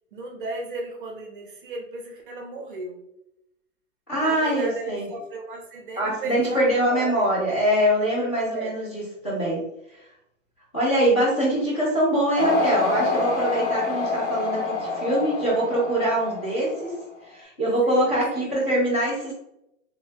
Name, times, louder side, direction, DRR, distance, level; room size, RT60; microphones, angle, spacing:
voice 1, 0.1-3.0 4.2-7.3 8.5-8.7 17.8-18.5, right 3 dB, 40° right, 2 dB, 0.7 m, -35 dB
voice 2, 4.1-5.1 6.0-9.6 10.7-16.9 17.3-19.3, right 1 dB, 10° left, -8 dB, 0.4 m, -23 dB
sound 1, 12.4-17.0, left 3 dB, 60° left, 1.2 m, -26 dB
3.0 x 2.9 x 2.7 m, 0.83 s
hypercardioid pair, 160°, 39 cm